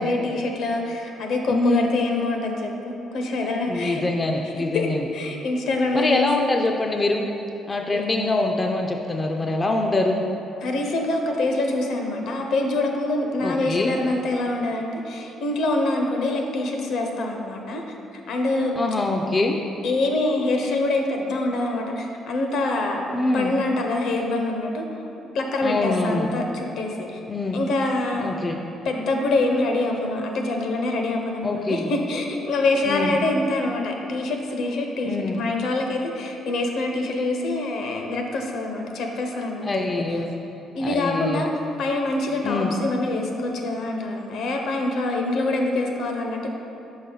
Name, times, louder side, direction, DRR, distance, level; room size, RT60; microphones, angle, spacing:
voice 1, 0.0-4.0 4.7-6.5 7.9-8.0 10.6-17.8 18.3-18.8 19.8-24.9 25.3-27.2 27.5-28.3 28.8-39.9 40.7-41.5 41.8-46.5, left 2 dB, 70° left, 2 dB, 0.7 m, -25 dB
voice 2, 1.5-1.9 3.7-5.1 5.9-7.2 7.7-10.2 13.4-14.0 18.8-19.6 23.1-23.5 25.6-26.3 27.3-27.6 28.2-28.6 31.4-31.9 32.8-33.2 35.0-35.4 39.6-40.3 40.8-41.5 42.4-42.8, left 2 dB, 20° left, 2 dB, 0.3 m, -24 dB
5.4 x 5.3 x 3.8 m, 2.9 s
cardioid pair, 135°, 0 cm